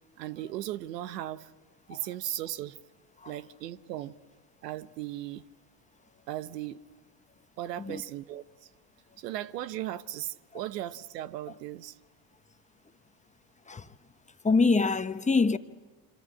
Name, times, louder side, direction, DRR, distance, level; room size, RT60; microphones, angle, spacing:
voice 1, 0.2-1.5 1.9-2.8 3.3-4.2 4.6-5.5 6.3-6.8 7.6-8.4 9.2-12.0, right 13 dB, 90° right, 1.0 m, -37 dB
voice 2, 14.4-15.6, left 4 dB, 15° left, 1.2 m, -25 dB
27.5 x 25.5 x 8.5 m
supercardioid pair, 90°, 48 cm